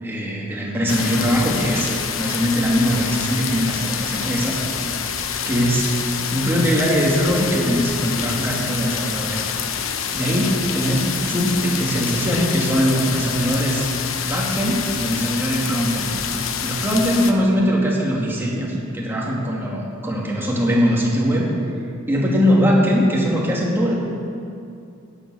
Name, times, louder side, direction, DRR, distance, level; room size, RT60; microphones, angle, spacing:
voice 1, 0.0-4.6 5.4-9.4 10.1-13.9 14.2-16.1 16.6-21.5 22.1-23.9, equal, 10° right, -4 dB, 2.5 m, -21 dB
sound 1, 0.9-17.3, left 7 dB, 80° left, 0.9 m, -27 dB
15.0 x 9.5 x 6.4 m, 2.5 s
head